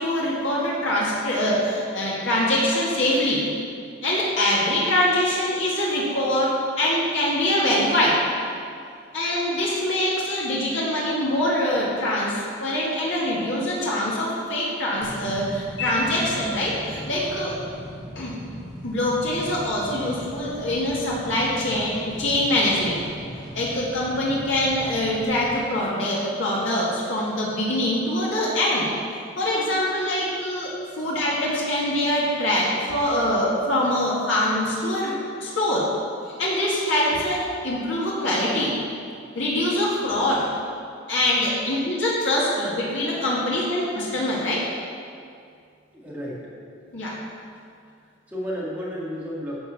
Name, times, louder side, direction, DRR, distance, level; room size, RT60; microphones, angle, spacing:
voice 1, 0.0-3.5 4.0-6.5 6.8-8.2 9.1-17.6 18.2-18.3 18.8-23.0 23.5-28.9 29.4-35.1 35.4-35.9 36.4-38.7 39.4-40.5 41.1-44.7 46.9-47.1, left 1 dB, 70° left, -6 dB, 2.0 m, -24 dB
sound 1, 15.0-25.6, equal, 35° left, 1.9 m, -39 dB
voice 2, 45.9-46.5 48.0-49.6, equal, 10° right, -7 dB, 2.1 m, -32 dB
11.5 x 4.6 x 7.3 m, 2.3 s
head